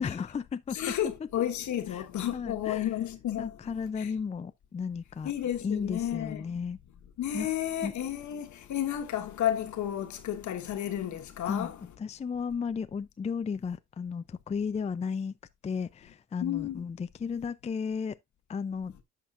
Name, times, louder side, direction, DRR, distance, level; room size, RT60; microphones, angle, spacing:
voice 1, 0.0-0.9 1.9-2.1 2.3-2.9 3.4-5.3 5.6-6.8 7.3-7.5 7.8-7.9 11.4-15.3 15.6-18.2 18.5-18.9, left 6 dB, 20° left, 0.4 m, -34 dB
voice 2, 0.7-3.5 4.0-4.1 5.2-6.4 7.2-11.8 16.4-16.8, left 11 dB, 75° left, 1.3 m, -32 dB
10.0 x 6.1 x 2.5 m
cardioid pair, 90°, 30 cm